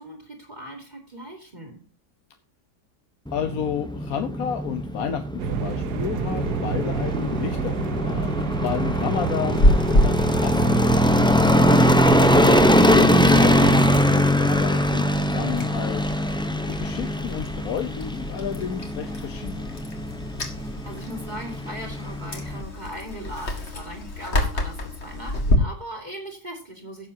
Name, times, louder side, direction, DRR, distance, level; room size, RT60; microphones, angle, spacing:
voice 1, 0.0-1.8 20.6-27.1, equal, 25° right, 0 dB, 2.9 m, -39 dB
voice 2, 3.3-11.8 12.3-16.0 16.5-19.7, left 8 dB, 60° left, 7 dB, 1.2 m, -31 dB
sound 1, 3.3-22.6, left 1 dB, 5° left, 0.4 m, -22 dB
sound 2, 5.4-14.0, right 9 dB, 75° right, 1.2 m, -29 dB
Chewing mastication, 9.5-25.6, left 1 dB, 40° left, 2.1 m, -28 dB
17.0 x 7.3 x 2.8 m, 0.36 s
omnidirectional pair, 1.8 m